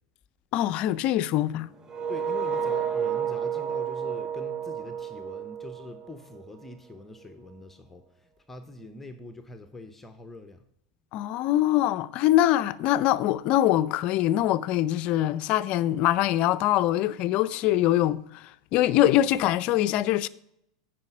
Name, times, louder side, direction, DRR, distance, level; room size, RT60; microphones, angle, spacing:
voice 1, 0.5-1.7 11.1-18.4 18.7-20.3, left 13 dB, 50° left, 0.4 m, -23 dB
sound 1, 1.9-6.7, right 7 dB, 25° right, 0.7 m, -31 dB
voice 2, 2.1-10.6, left 2 dB, 10° left, 0.8 m, -44 dB
9.6 x 4.9 x 6.0 m
hypercardioid pair, 100°, 2 cm